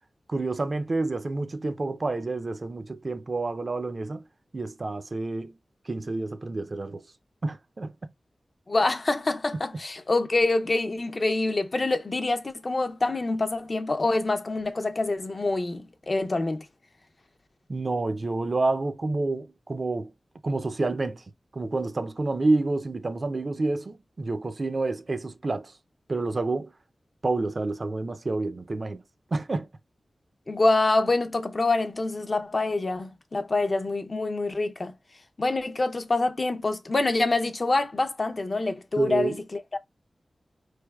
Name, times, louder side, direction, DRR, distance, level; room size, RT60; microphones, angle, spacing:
voice 1, 0.3-4.2 4.5-5.6 5.9-7.1 7.4-7.9 17.7-20.1 20.4-21.2 21.5-25.7 26.1-26.7 27.2-29.0 29.3-29.7 39.0-39.4, right 3 dB, 50° right, 0.4 m, -28 dB
voice 2, 8.7-16.7 30.5-34.9 35.4-39.8, left 2 dB, 45° left, 0.5 m, -26 dB
4.1 x 3.3 x 2.2 m
wide cardioid pair, 70°, 0 cm